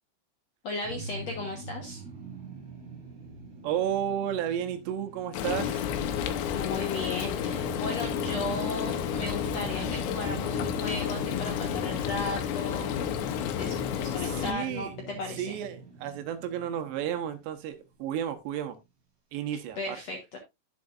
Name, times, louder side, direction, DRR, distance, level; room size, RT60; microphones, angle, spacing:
voice 1, 0.6-2.0 6.5-13.0 13.3-15.5 19.7-20.4, left 2 dB, 65° left, 1.7 m, -36 dB
sound 1, 0.8-18.0, right 4 dB, 40° right, 3.1 m, -43 dB
voice 2, 3.6-5.8 8.2-8.6 14.2-15.0 15.4-18.8 19.3-20.0, right 10 dB, 80° right, 3.2 m, -32 dB
Frying (food), 5.3-14.5, left 9 dB, 85° left, 3.2 m, -31 dB
11.0 x 7.8 x 2.5 m
omnidirectional pair, 5.0 m